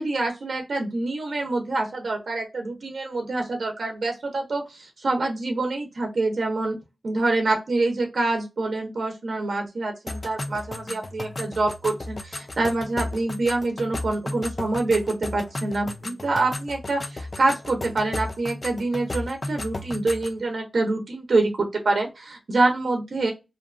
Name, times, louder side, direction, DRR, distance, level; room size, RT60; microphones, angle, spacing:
voice 1, 0.0-4.6 5.0-6.7 7.0-23.3, right 2 dB, 65° right, 2 dB, 0.6 m, -26 dB
sound 1, 10.1-20.4, left 2 dB, 35° left, 0.3 m, -34 dB
2.5 x 2.3 x 2.4 m, 0.24 s
wide cardioid pair, 105°, 0 cm